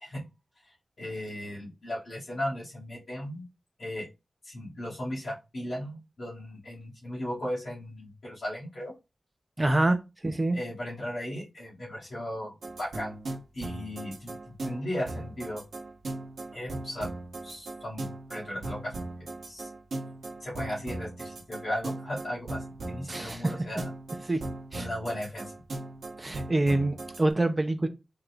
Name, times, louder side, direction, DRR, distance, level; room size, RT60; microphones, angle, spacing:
voice 1, 1.0-3.4 3.8-4.1 4.4-8.9 10.5-13.1 13.5-14.4 14.6-15.6 16.5-17.1 17.4-18.9 19.2-19.7 20.4-22.6 22.9-23.8 24.7-25.4, left 1 dB, 60° left, 2.5 m, -36 dB
voice 2, 9.6-10.0 10.2-10.6 23.1-23.5 24.2-24.4 24.7-24.9 26.2-27.9, right 2 dB, 20° right, 0.7 m, -26 dB
sound 1, 12.6-27.2, right 2 dB, 75° right, 1.2 m, -38 dB
5.0 x 3.0 x 2.5 m
wide cardioid pair, 115°, 0 cm